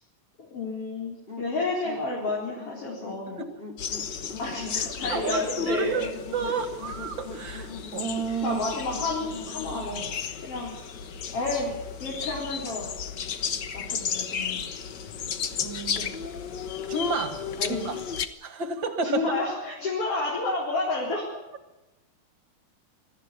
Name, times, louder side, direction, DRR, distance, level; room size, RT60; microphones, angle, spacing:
voice 1, 0.4-3.4 4.4-6.0 8.4-10.1 10.4-10.7 11.3-11.7 12.0-12.9 13.7-14.6 16.0-16.1 17.6-18.0 19.0-21.3, left 2 dB, 45° left, -3 dB, 5.0 m, -30 dB
sound 1, 1.3-10.0, left 3 dB, 20° left, 2.3 m, -42 dB
sound 2, 3.8-18.3, left 7 dB, 70° left, 1.0 m, -34 dB
voice 2, 5.1-8.6 15.6-16.1 16.9-17.5 17.8-18.0 18.4-19.3, right 3 dB, 45° right, 8 dB, 2.0 m, -31 dB
22.0 x 14.0 x 9.7 m, 0.98 s
omnidirectional pair, 3.6 m